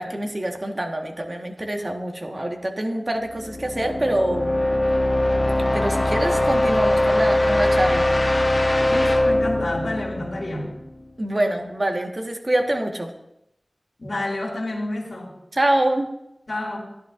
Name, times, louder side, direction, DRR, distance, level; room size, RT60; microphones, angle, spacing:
voice 1, 0.0-4.7 5.7-8.1 11.2-13.1 15.5-16.1, right 1 dB, 45° right, 3 dB, 1.4 m, -25 dB
sound 1, 3.3-11.1, left 1 dB, 40° left, 1.1 m, -21 dB
voice 2, 8.9-10.7 14.0-15.3 16.5-16.8, left 1 dB, 85° left, -2 dB, 2.5 m, -29 dB
14.0 x 11.0 x 2.6 m, 0.83 s
wide cardioid pair, 55°, 0 cm